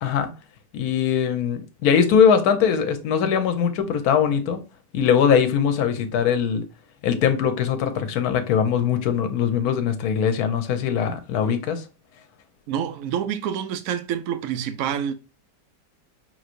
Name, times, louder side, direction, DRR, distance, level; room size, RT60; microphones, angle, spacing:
voice 1, 0.7-4.6 4.9-6.6 7.0-11.8, left 7 dB, 65° left, 1.2 m, -21 dB
voice 2, 12.7-15.1, right 9 dB, 65° right, 0.8 m, -27 dB
5.7 x 3.1 x 2.5 m
omnidirectional pair, 1.9 m